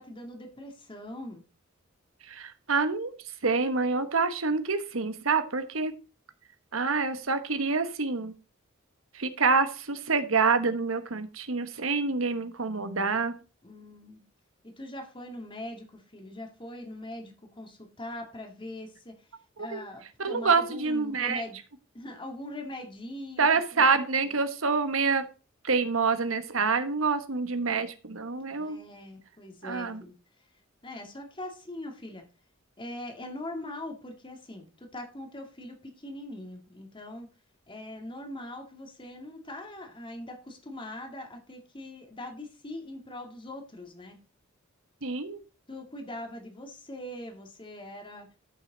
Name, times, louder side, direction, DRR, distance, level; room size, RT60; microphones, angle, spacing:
voice 1, 0.0-1.4 13.6-14.2 14.6-19.3 19.6-21.6 21.9-24.4 28.6-30.1 30.8-32.2 32.8-37.3 37.7-44.2 45.7-48.3, left 1 dB, 25° left, 3 dB, 2.2 m, -41 dB
voice 2, 2.2-3.1 3.4-5.9 6.7-8.3 9.1-13.3 19.6-19.8 20.2-21.4 23.4-25.2 25.6-28.8 29.6-30.0 45.0-45.4, right 4 dB, 75° right, 9 dB, 1.3 m, -27 dB
12.0 x 6.4 x 4.0 m, 0.33 s
head